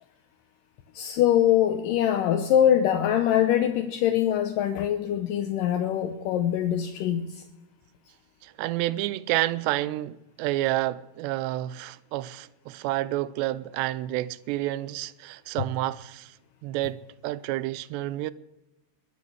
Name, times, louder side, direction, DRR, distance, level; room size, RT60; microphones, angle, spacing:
voice 1, 0.9-7.4, left 10 dB, 80° left, 2.0 m, -23 dB
voice 2, 8.4-16.4 16.6-18.3, right 16 dB, 85° right, 2.8 m, -29 dB
22.5 x 8.4 x 7.2 m
omnidirectional pair, 4.9 m